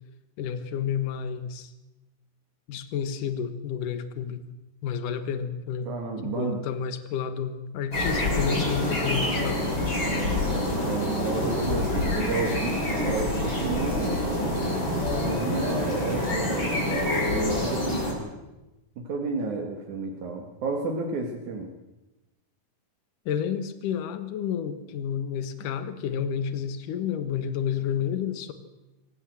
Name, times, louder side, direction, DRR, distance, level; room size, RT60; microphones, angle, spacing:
voice 1, 0.4-1.7 2.7-4.4 4.8-5.9 6.2-9.7 23.3-28.5, left 8 dB, 75° left, 11 dB, 2.9 m, -30 dB
voice 2, 5.8-6.6 10.1-14.2 15.2-18.0 19.0-21.7, right 3 dB, 65° right, 2 dB, 3.3 m, -31 dB
sound 1, 7.9-18.1, left 1 dB, 35° left, 7.3 m, -27 dB
24.5 x 16.0 x 7.8 m, 1.0 s
omnidirectional pair, 3.8 m